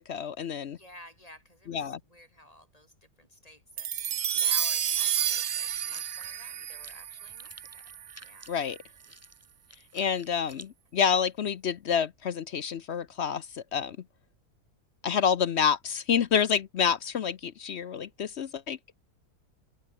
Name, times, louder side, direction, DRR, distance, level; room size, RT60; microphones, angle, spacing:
voice 1, 0.1-0.8 1.7-2.0 8.5-8.8 9.9-14.0 15.0-18.8, left 7 dB, 55° left, 0.8 m, -28 dB
voice 2, 0.7-1.8 2.1-2.9 3.2-3.9 4.3-7.8 8.2-8.5, left 1 dB, 20° left, 6.4 m, -52 dB
sound 1, 3.8-8.3, right 9 dB, 70° right, 1.5 m, -30 dB
sound 2, 5.7-10.7, equal, 10° right, 8.1 m, -53 dB
omnidirectional pair, 1.7 m